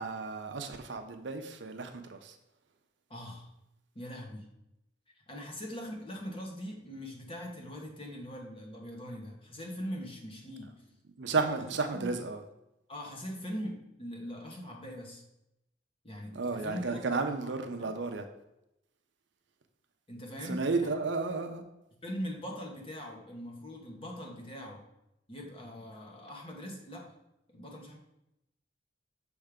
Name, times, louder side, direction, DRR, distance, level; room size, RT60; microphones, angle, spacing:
voice 1, 0.0-2.4 11.2-12.4 16.3-18.3 20.4-21.6, right 3 dB, 65° right, 6 dB, 0.6 m, -33 dB
voice 2, 3.1-3.5 3.9-4.5 5.3-10.7 11.9-12.1 12.9-15.2 16.0-17.2 17.8-17.9 20.1-20.9 22.0-24.8 25.3-27.1 27.5-28.0, equal, 30° left, 0 dB, 1.2 m, -41 dB
6.5 x 3.5 x 5.0 m, 0.87 s
head